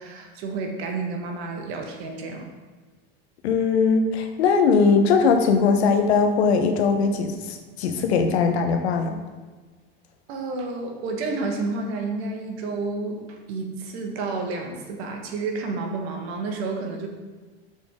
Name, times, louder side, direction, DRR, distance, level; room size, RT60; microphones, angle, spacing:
voice 1, 0.0-2.5 10.3-17.1, right 3 dB, 75° right, 3 dB, 1.5 m, -30 dB
voice 2, 3.4-9.2, left 5 dB, 85° left, 5 dB, 1.0 m, -20 dB
7.0 x 6.5 x 3.7 m, 1.4 s
hypercardioid pair, 95°, 32 cm